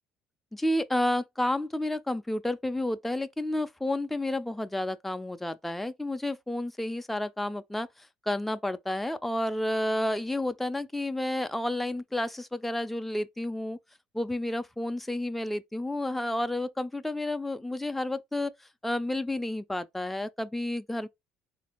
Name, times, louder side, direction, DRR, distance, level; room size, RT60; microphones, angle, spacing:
voice 1, 0.5-13.8 14.1-18.5 18.8-21.1, left 1 dB, 5° left, 0.3 m, -31 dB
4.1 x 2.5 x 2.9 m
cardioid pair, 105°, 4 cm